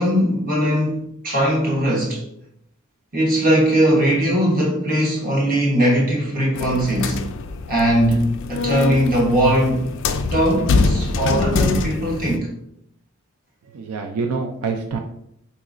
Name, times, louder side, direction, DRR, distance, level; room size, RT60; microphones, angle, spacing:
voice 1, 0.0-2.2 3.1-7.2 7.7-9.8 10.3-12.5, equal, 40° right, 1.1 m, -19 dB
sound 1, 6.6-12.4, left 3 dB, 60° left, 0.3 m, -24 dB
voice 2, 13.6-15.0, right 4 dB, 85° right, 0.4 m, -26 dB
3.9 x 2.9 x 2.5 m
head